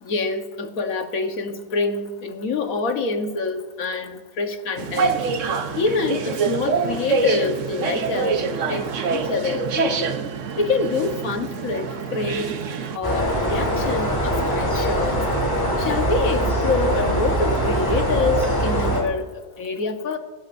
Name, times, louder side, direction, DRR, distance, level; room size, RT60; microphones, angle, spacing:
voice 1, 0.0-5.2 5.8-8.4 8.7-10.1 10.6-12.6 12.9-15.2 15.8-20.2, left 4 dB, 70° left, 5 dB, 1.6 m, -26 dB
sound 1, 4.8-13.0, right 5 dB, 60° right, 1.2 m, -25 dB
sound 2, 13.0-19.0, right 1 dB, 15° left, 3.0 m, -22 dB
24.0 x 13.0 x 2.6 m, 1.3 s
omnidirectional pair, 1.6 m